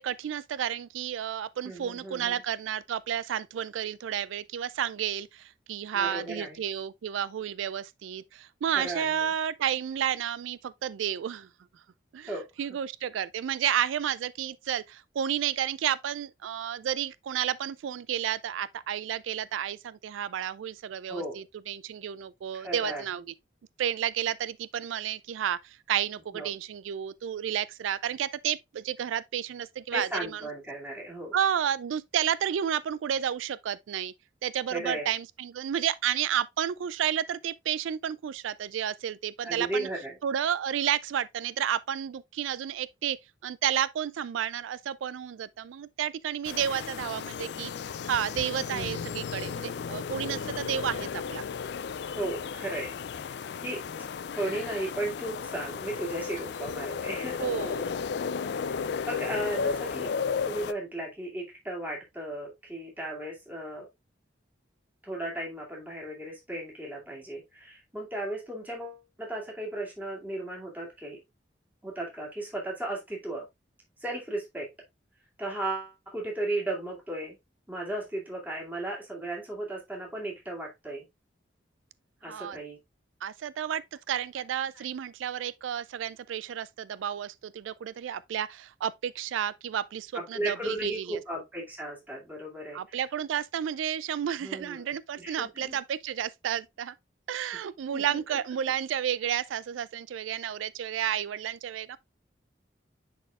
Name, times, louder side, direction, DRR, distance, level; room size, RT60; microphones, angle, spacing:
voice 1, 0.0-11.5 12.1-23.2 23.8-30.4 31.3-34.1 34.4-39.9 40.2-43.2 43.4-47.7 48.1-51.5 57.4-58.0 82.3-82.6 83.2-83.8 84.1-91.2 92.7-96.9 97.3-102.0, right 9 dB, 90° right, 0.3 m, -31 dB
voice 2, 1.6-2.4 5.9-6.6 8.7-9.3 12.2-12.4 21.1-21.4 22.5-23.0 26.3-26.5 29.9-31.3 34.7-35.1 39.4-40.2 48.7-49.3 52.1-52.9 53.2-53.8 54.3-57.5 58.4-58.8 59.1-60.1 60.4-63.9 65.0-71.2 71.8-73.5 74.0-74.7 75.4-77.4 77.7-81.0 82.2-82.8 84.7-84.9 90.1-93.0 94.4-94.9 95.2-95.8 97.9-98.4, right 1 dB, 10° right, 2.4 m, -35 dB
sound 1, 46.4-60.7, left 6 dB, 60° left, 0.3 m, -34 dB
10.0 x 4.2 x 2.3 m
head